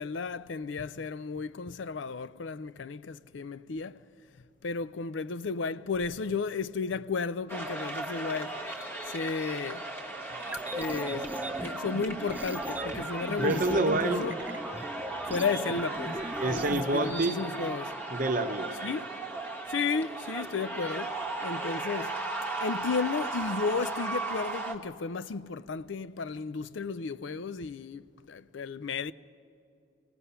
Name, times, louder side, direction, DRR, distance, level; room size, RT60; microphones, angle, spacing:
voice 1, 0.0-4.0 4.6-8.6 9.1-9.9 10.7-11.3 11.6-14.3 15.3-17.9 18.8-19.1 19.7-21.1 21.4-22.2 22.6-29.1, left 4 dB, 70° left, 0.5 m, -33 dB
sound 1, 7.5-24.7, right 2 dB, 10° left, 1.3 m, -36 dB
sound 2, 10.4-17.2, right 1 dB, 10° right, 0.5 m, -38 dB
voice 2, 13.4-14.2 16.4-17.4 18.1-18.7, right 2 dB, 40° right, 0.9 m, -28 dB
27.0 x 18.0 x 5.7 m
head